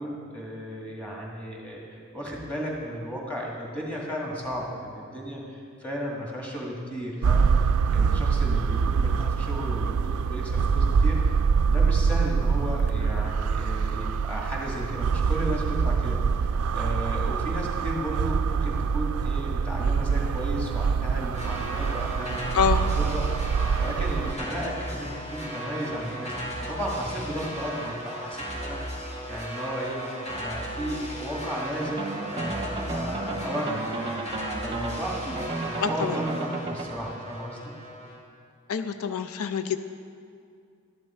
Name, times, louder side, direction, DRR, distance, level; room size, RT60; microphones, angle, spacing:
voice 1, 0.0-11.4 11.7-22.4 23.0-23.3 23.8-28.8 29.3-30.0 30.3-34.3 34.6-37.7, equal, 5° left, -3 dB, 2.1 m, -34 dB
sound 1, 7.2-24.3, right 5 dB, 85° right, 0.3 m, -25 dB
sound 2, 21.3-38.2, equal, 30° left, 2.0 m, -36 dB
voice 2, 22.5-22.9 35.8-36.2 38.7-39.8, left 7 dB, 85° left, 10 dB, 0.5 m, -26 dB
sound 3, 31.8-36.8, right 2 dB, 25° right, 0.7 m, -33 dB
12.0 x 11.0 x 4.4 m, 2.3 s
head